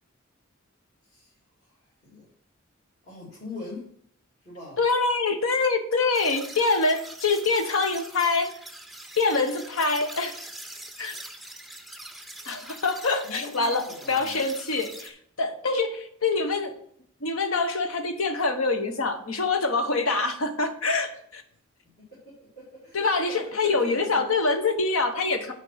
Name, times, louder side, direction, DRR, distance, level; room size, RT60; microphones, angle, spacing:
voice 1, 1.7-2.3 3.1-3.9 4.4-4.8 13.2-14.4 22.1-24.3, left 2 dB, 35° left, -8 dB, 2.7 m, -42 dB
voice 2, 4.8-8.5 9.2-10.4 11.0-11.2 12.5-16.7 17.2-21.4 22.9-25.5, left 3 dB, 85° left, 7 dB, 1.1 m, -25 dB
sound 1, 6.1-15.1, right 1 dB, ahead, 0.5 m, -43 dB
8.1 x 4.4 x 5.7 m, 0.67 s
head